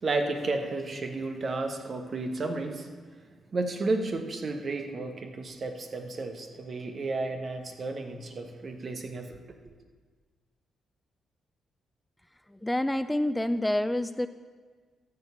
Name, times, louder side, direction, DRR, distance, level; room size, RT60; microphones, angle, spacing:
voice 1, 0.0-2.9 3.5-9.4, right 3 dB, 50° right, 5 dB, 1.3 m, -32 dB
voice 2, 12.5-14.3, left 1 dB, 10° left, 12 dB, 0.4 m, -27 dB
13.5 x 4.7 x 7.1 m, 1.5 s
hypercardioid pair, 40°, 0 cm